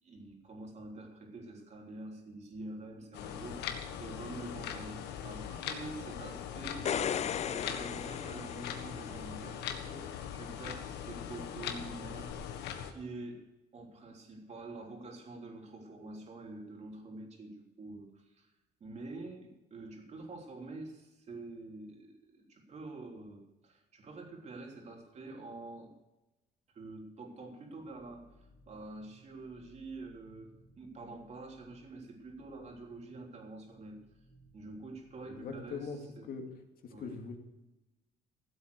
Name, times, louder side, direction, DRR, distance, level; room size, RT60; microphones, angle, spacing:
voice 1, 0.0-6.9 7.3-12.5 12.9-13.4 13.7-18.5 18.8-25.9 26.7-34.0 34.5-35.9 36.2-36.3 36.9-37.2, right 2 dB, 40° right, 2 dB, 3.4 m, -47 dB
sound 1, 3.1-12.9, left 8 dB, 80° left, 1.6 m, -41 dB
sound 2, 6.7-9.2 12.3-12.4, left 8 dB, 40° left, 0.6 m, -36 dB
sound 3, 27.8-35.9, equal, 15° left, 4.4 m, -62 dB
voice 2, 35.3-36.0 36.3-36.4 36.8-37.4, left 5 dB, 60° left, 4 dB, 2.4 m, -41 dB
15.5 x 8.1 x 6.7 m, 1.0 s
cardioid pair, 110°, 17 cm